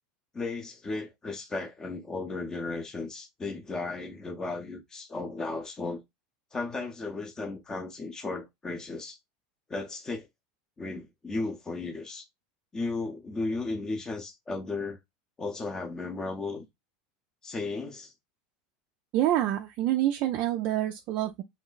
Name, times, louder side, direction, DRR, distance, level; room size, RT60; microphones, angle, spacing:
voice 1, 0.3-6.0 6.5-9.2 9.7-10.3 10.8-12.2 12.7-15.0 15.4-16.6 17.4-18.1, left 3 dB, 15° left, 0.6 m, -35 dB
voice 2, 19.1-21.4, right 13 dB, 45° right, 0.3 m, -27 dB
3.2 x 2.0 x 3.8 m
supercardioid pair, 145°, 4 cm